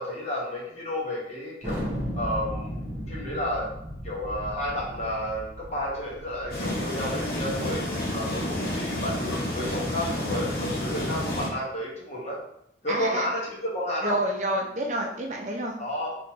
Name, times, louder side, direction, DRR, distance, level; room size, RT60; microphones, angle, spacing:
voice 1, 0.0-1.8 2.2-2.7 3.1-3.7 4.0-7.8 8.1-12.4 12.8-14.2 15.8-16.2, left 1 dB, 40° left, -5 dB, 1.1 m, -31 dB
Thunder, 1.6-6.8, equal, 15° right, 1.1 m, -35 dB
sound 1, 6.5-11.5, left 1 dB, 55° left, 0.8 m, -30 dB
voice 2, 12.9-13.2 14.0-15.8, right 1 dB, 40° right, 0 dB, 0.5 m, -28 dB
3.6 x 3.0 x 2.9 m, 0.72 s
head